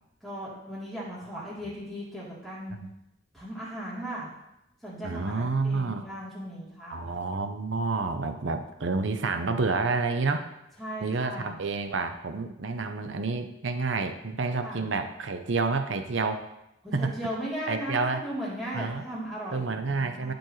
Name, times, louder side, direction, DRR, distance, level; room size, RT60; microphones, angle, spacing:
voice 1, 0.2-2.8 3.3-4.3 4.8-7.1 10.8-11.6 14.6-14.9 16.8-20.3, equal, ahead, -9 dB, 3.1 m, -37 dB
voice 2, 5.0-6.1 6.9-10.4 11.0-16.4 16.9-17.1 17.7-18.2 18.7-19.0 19.5-20.3, right 4 dB, 70° right, 7 dB, 0.7 m, -29 dB
12.5 x 5.2 x 3.2 m, 0.85 s
head